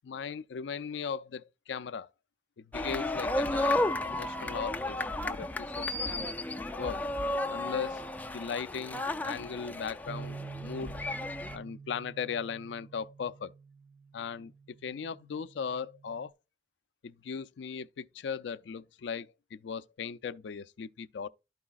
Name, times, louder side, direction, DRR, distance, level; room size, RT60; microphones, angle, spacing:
voice 1, 0.0-2.1 2.6-6.3 6.8-7.0 7.5-10.9 11.5-13.5 14.1-14.5 14.8-16.3 17.0-21.3, left 6 dB, 80° left, 0.4 m, -38 dB
sound 1, 2.7-11.6, left 1 dB, 10° left, 0.3 m, -33 dB
Bass guitar, 10.1-16.3, right 5 dB, 65° right, 0.4 m, -47 dB
12.0 x 4.7 x 2.3 m
head